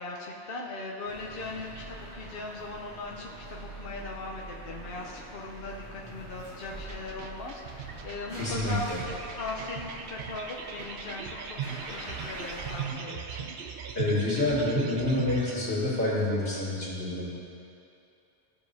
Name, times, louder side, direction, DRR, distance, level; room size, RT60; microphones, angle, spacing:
voice 1, 0.0-13.5, left 2 dB, 60° left, -2 dB, 0.9 m, -39 dB
sound 1, 1.1-12.9, right 1 dB, 90° right, 2.3 m, -44 dB
sound 2, 6.8-15.6, right 8 dB, 60° right, 0.7 m, -38 dB
voice 2, 8.4-9.0 13.9-17.3, left 2 dB, 85° left, -7 dB, 2.4 m, -28 dB
15.0 x 6.8 x 2.7 m, 2.7 s
omnidirectional pair, 1.1 m